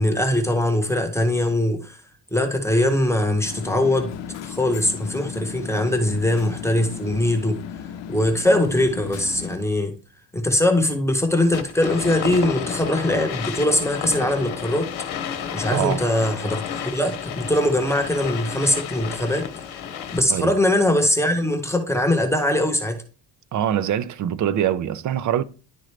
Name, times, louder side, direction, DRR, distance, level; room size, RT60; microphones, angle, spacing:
voice 1, 0.0-2.0 2.3-4.1 4.4-7.6 8.1-9.9 10.3-14.9 15.5-19.5 20.1-23.0, left 1 dB, 5° left, 0.8 m, -21 dB
sound 1, 3.4-9.6, left 9 dB, 85° left, 0.7 m, -36 dB
Glitching Vinyl Record Player A, 11.5-20.4, left 8 dB, 60° left, 1.0 m, -31 dB
voice 2, 15.7-16.0 20.3-20.5 23.5-25.4, right 10 dB, 45° right, 0.5 m, -23 dB
10.5 x 3.8 x 3.2 m
cardioid pair, 160°, 43 cm